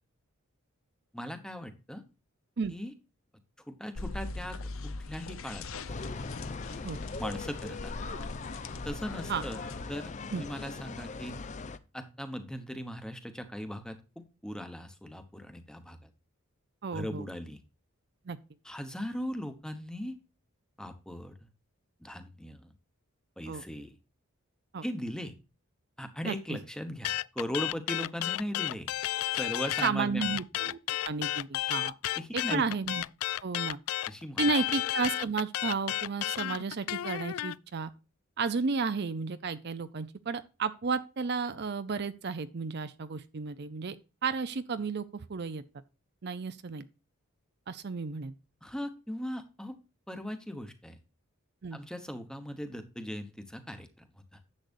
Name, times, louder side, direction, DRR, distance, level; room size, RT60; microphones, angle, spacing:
voice 1, 1.1-2.0 2.7-2.9 3.7-4.6 5.1-5.7 7.2-7.9 8.8-9.6 9.9-11.4 11.9-16.1 16.9-17.6 18.6-20.2 20.8-21.5 22.0-22.7 23.4-24.0 24.8-25.3 26.0-28.9 29.3-30.3 32.2-32.6 34.1-34.6 48.6-49.8 50.1-51.0 51.7-53.9 54.3-54.4, equal, 5° left, 1.0 m, -38 dB
sound 1, 3.9-9.8, left 3 dB, 70° left, 0.7 m, -41 dB
sound 2, 5.9-11.8, left 3 dB, 35° left, 0.5 m, -40 dB
voice 2, 16.8-17.2 18.3-18.4 23.5-23.6 24.7-24.8 26.2-26.6 29.8-30.8 31.0-31.9 32.3-33.0 33.4-33.8 34.4-37.9 38.4-44.0 44.2-45.6 46.2-46.9 47.7-48.3 51.6-51.8, right 5 dB, 50° right, 0.6 m, -32 dB
sound 3, 27.0-29.9 30.2-37.5, left 15 dB, 90° left, 0.3 m, -32 dB
10.5 x 7.7 x 2.5 m
head